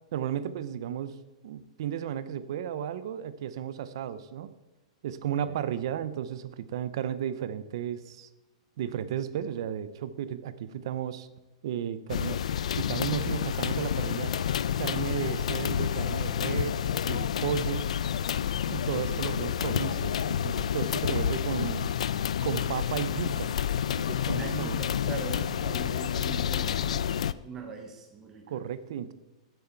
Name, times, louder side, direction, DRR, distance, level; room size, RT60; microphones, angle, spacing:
voice 1, 0.1-1.2 1.4-4.5 5.0-8.3 8.8-11.3 11.6-12.4 12.7-14.3 14.8-17.9 18.7-21.9 22.4-23.5 24.0-24.8 28.5-29.1, right 9 dB, 45° right, 14 dB, 0.7 m, -34 dB
sound 1, 12.1-27.3, left 9 dB, 90° left, 0.4 m, -29 dB
voice 2, 24.3-28.6, right 4 dB, 10° right, 2 dB, 0.7 m, -41 dB
14.5 x 7.8 x 4.5 m, 1.1 s
supercardioid pair, 180°, 3 cm